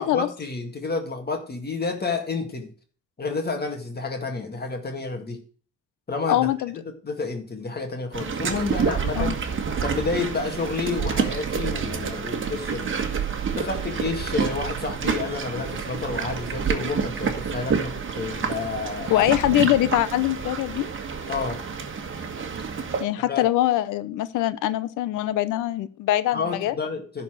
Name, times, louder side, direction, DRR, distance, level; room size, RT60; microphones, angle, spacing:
voice 1, 0.0-2.7 3.2-5.4 6.1-6.5 7.0-9.3 9.8-12.9 13.5-19.3 21.3-21.6 23.2-23.5 26.3-27.2, left 4 dB, 30° left, 5 dB, 2.0 m, -30 dB
voice 2, 6.3-6.8 9.1-9.3 19.1-20.9 23.0-26.7, left 14 dB, 90° left, 15 dB, 0.7 m, -23 dB
sound 1, 8.1-23.0, right 6 dB, 40° right, 1.6 m, -28 dB
11.0 x 4.4 x 7.7 m, 0.42 s
cardioid pair, 90°, 30 cm